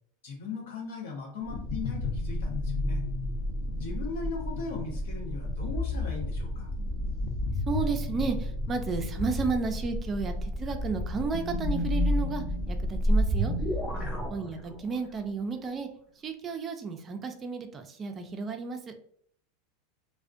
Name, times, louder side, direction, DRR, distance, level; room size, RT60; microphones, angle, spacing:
voice 1, 0.2-3.0 3.8-6.7 13.9-14.2, left 4 dB, 90° left, -1 dB, 0.8 m, -38 dB
sound 1, 1.4-13.8, left 2 dB, 55° left, 0.5 m, -32 dB
voice 2, 7.7-13.5 14.3-15.9 16.2-18.9, right 5 dB, 25° right, 6 dB, 0.3 m, -33 dB
sound 2, 12.4-15.1, right 1 dB, 5° left, 0.7 m, -28 dB
2.4 x 2.1 x 2.4 m, 0.62 s
supercardioid pair, 130°, 0 cm